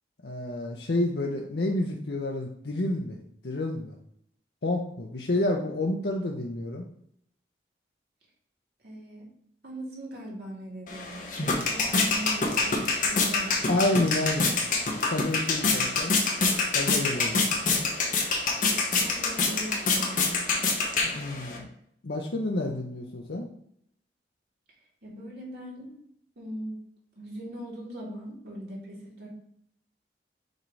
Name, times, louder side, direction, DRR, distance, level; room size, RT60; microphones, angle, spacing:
voice 1, 0.2-3.2 3.4-4.0 4.6-6.9 13.7-14.6 15.1-16.1 16.7-17.7 21.1-21.7 22.0-23.5, left 2 dB, 70° left, 0 dB, 0.7 m, -29 dB
voice 2, 5.3-5.7 8.8-9.3 9.6-13.7 15.7-16.0 19.0-20.7 25.0-25.9 26.4-26.8 27.2-29.3, equal, 65° right, -3 dB, 2.2 m, -40 dB
sound 1, 10.9-21.6, left 3 dB, 45° left, 1.1 m, -26 dB
6.5 x 3.2 x 4.7 m, 0.70 s
head